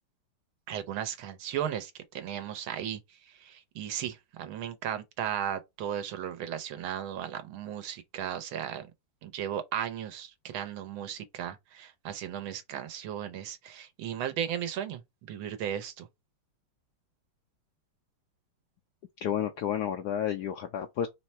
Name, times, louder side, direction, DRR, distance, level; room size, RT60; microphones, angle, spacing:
voice 1, 0.7-8.9 9.2-16.1, right 9 dB, 80° right, 1.7 m, -36 dB
voice 2, 19.2-21.1, left 9 dB, 80° left, 0.9 m, -31 dB
3.7 x 3.2 x 4.2 m
omnidirectional pair, 2.2 m